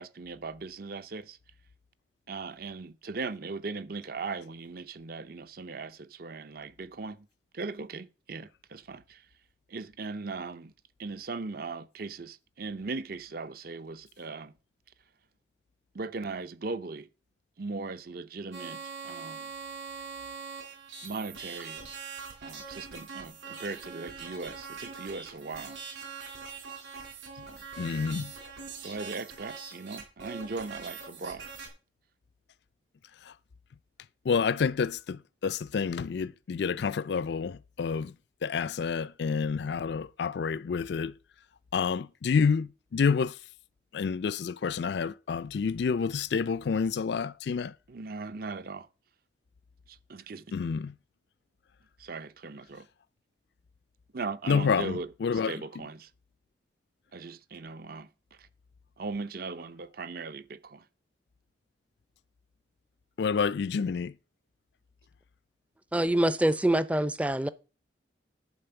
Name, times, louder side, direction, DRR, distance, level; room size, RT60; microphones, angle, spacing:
voice 1, 0.0-1.4 2.3-7.3 7.5-9.3 9.7-10.7 11.0-14.5 15.9-17.1 17.6-19.5 21.0-21.9 22.4-25.8 27.4-27.6 28.8-31.5 47.9-48.9 49.9-50.5 52.0-52.9 54.1-56.1 57.1-58.1 58.4-58.5 59.0-60.9, right 4 dB, 50° right, 0.6 m, -39 dB
sound 1, 18.5-31.7, right 5 dB, 90° right, 3.9 m, -43 dB
voice 2, 27.8-28.3 33.2-33.3 34.2-38.1 38.4-41.1 41.7-43.4 43.9-47.7 50.5-51.0 54.5-55.6 63.2-64.1, left 5 dB, 65° left, 0.4 m, -29 dB
voice 3, 65.9-67.5, right 1 dB, 5° right, 0.4 m, -25 dB
11.0 x 4.3 x 6.9 m
head